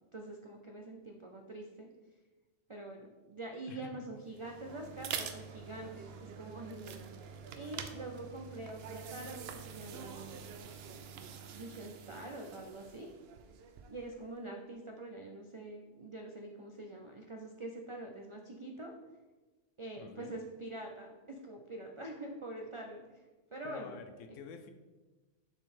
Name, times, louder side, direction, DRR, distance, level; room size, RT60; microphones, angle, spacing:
voice 1, 0.1-1.9 2.7-7.0 7.6-10.4 11.5-13.1 13.9-18.9 19.8-23.3 23.5-24.0, right 2 dB, 45° right, 2 dB, 0.4 m, -45 dB
voice 2, 3.7-4.1 20.0-20.4 23.6-24.7, left 5 dB, 85° left, 7 dB, 1.0 m, -48 dB
sound 1, 4.2-14.1, right 6 dB, 65° right, 0.7 m, -46 dB
7.0 x 4.0 x 4.2 m, 1.2 s
omnidirectional pair, 1.3 m